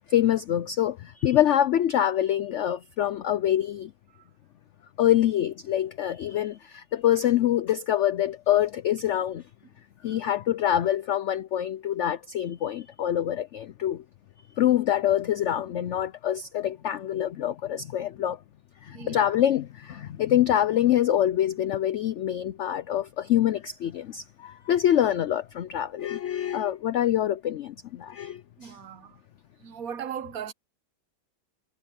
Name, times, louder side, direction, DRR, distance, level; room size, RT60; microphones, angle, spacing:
voice 1, 0.1-3.9 5.0-9.4 10.0-14.0 14.6-18.4 18.8-28.7, left 11 dB, 85° left, 0.6 m, -25 dB
voice 2, 18.9-19.4 28.2-29.2 29.6-30.5, right 8 dB, 65° right, 1.2 m, -39 dB
omnidirectional pair, 1.8 m